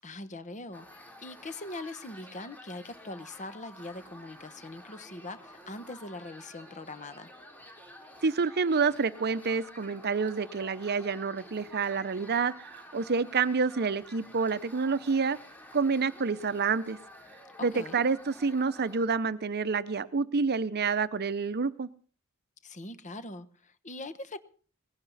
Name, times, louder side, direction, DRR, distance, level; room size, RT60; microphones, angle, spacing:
voice 1, 0.0-7.3 17.6-18.0 22.6-24.4, left 2 dB, 35° left, 13 dB, 1.1 m, -42 dB
sound 1, 0.7-19.1, left 1 dB, 10° left, 3.4 m, -51 dB
voice 2, 8.2-15.4 15.7-17.0 17.6-21.9, right 5 dB, 50° right, 15 dB, 0.7 m, -28 dB
19.5 x 16.5 x 4.1 m, 0.42 s
head